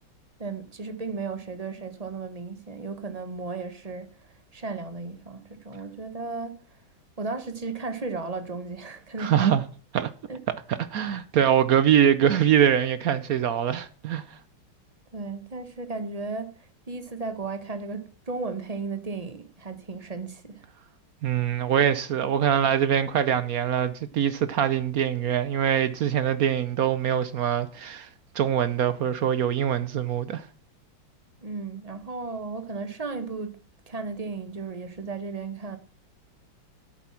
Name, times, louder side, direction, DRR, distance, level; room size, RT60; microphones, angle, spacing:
voice 1, 0.4-6.6 7.2-9.4 10.3-10.4 15.1-20.6 31.4-33.6 33.9-35.8, right 4 dB, 25° right, 1.0 m, -35 dB
voice 2, 9.2-9.7 9.9-10.1 10.9-14.2 21.2-28.1 28.3-30.5, right 9 dB, 65° right, 0.9 m, -23 dB
10.5 x 8.1 x 5.9 m
omnidirectional pair, 2.2 m